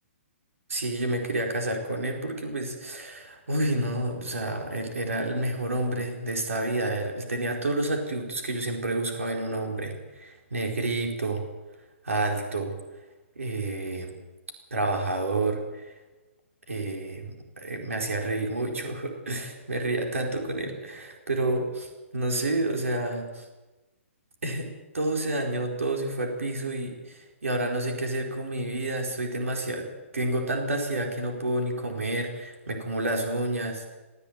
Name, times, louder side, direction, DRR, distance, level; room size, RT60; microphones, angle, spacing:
voice 1, 0.7-11.5 12.0-12.8 13.4-14.1 14.7-15.9 16.7-23.5 24.4-24.7 24.9-29.9 30.1-34.0, right 2 dB, 85° right, 2 dB, 4.5 m, -29 dB
23.0 x 14.0 x 8.7 m, 1.2 s
hypercardioid pair, 135°, 7 cm